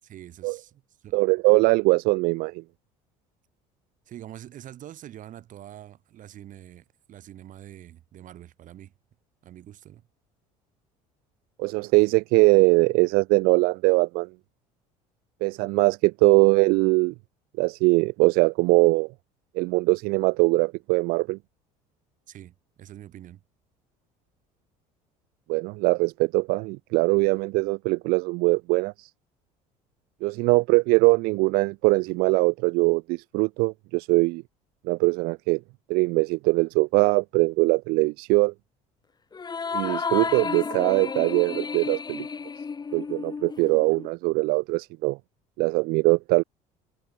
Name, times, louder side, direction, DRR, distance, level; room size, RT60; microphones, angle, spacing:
voice 1, 0.0-1.2 4.1-8.9 9.4-10.0 22.3-23.4, right 12 dB, 55° right, 4.6 m, -45 dB
voice 2, 1.1-2.6 11.6-14.3 15.4-17.1 17.6-19.1 19.5-21.4 25.5-29.1 30.2-34.4 34.8-35.6 35.9-38.5 39.7-42.3 42.9-45.2 45.6-46.4, right 25 dB, 75° right, 0.5 m, -22 dB
sound 1, 39.3-44.1, left 5 dB, 25° left, 1.8 m, -32 dB
supercardioid pair, 95°, 16 cm